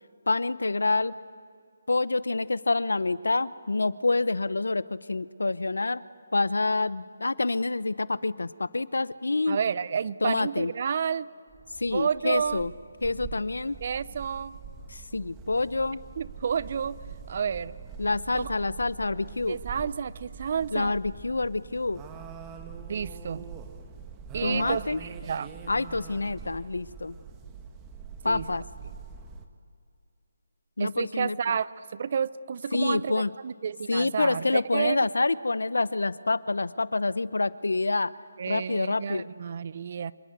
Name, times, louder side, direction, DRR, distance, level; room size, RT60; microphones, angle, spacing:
voice 1, 0.3-1.2 1.9-6.0 6.3-9.6 10.2-10.7 11.8-12.7 13.0-13.8 14.9-16.0 18.0-19.6 20.7-22.0 24.4-25.0 25.7-27.1 28.2-28.6 30.8-31.6 32.7-33.3 33.9-38.1 38.5-39.3, left 3 dB, 85° left, 18 dB, 0.8 m, -27 dB
voice 2, 9.5-11.3 11.9-12.7 13.8-14.6 16.2-17.0 17.3-17.8 18.3-18.5 19.5-20.9 22.9-23.5 24.3-25.5 28.2-28.5 30.8-33.1 33.4-35.0 38.4-40.1, right 7 dB, 45° right, 18 dB, 0.7 m, -30 dB
sound 1, 11.5-29.5, right 5 dB, 15° right, 1.5 m, -43 dB
26.5 x 24.0 x 8.2 m, 2.3 s
figure-of-eight pair, 160°, 0 cm